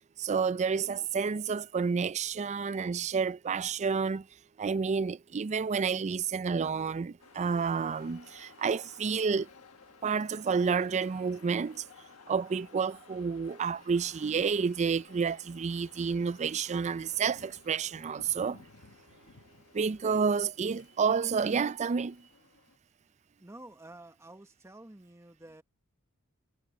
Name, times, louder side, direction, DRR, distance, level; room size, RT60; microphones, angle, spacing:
voice 1, 0.2-4.3 4.6-9.5 10.0-11.8 12.3-18.6 19.7-22.2, right 5 dB, 30° right, 0.4 m, -30 dB
sound 1, 7.2-22.8, left 4 dB, 75° left, 1.4 m, -57 dB
voice 2, 23.4-25.6, right 1 dB, 15° right, 1.1 m, -50 dB
head